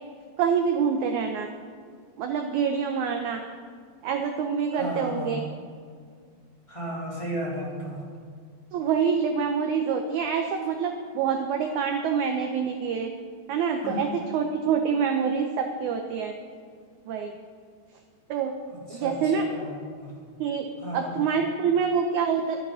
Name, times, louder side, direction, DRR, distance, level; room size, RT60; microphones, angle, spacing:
voice 1, 0.4-1.5 2.2-3.4 4.0-5.4 8.7-13.1 13.5-14.1 14.3-16.3 17.1-17.3 18.3-18.5 18.9-19.5 20.4-20.7 20.9-22.6, right 6 dB, 80° right, 4 dB, 1.7 m, -26 dB
voice 2, 4.7-5.3 6.7-8.0 13.8-14.0 18.7-20.1 20.8-21.1, equal, 10° left, -7 dB, 2.7 m, -34 dB
12.5 x 10.5 x 5.6 m, 2.1 s
omnidirectional pair, 4.3 m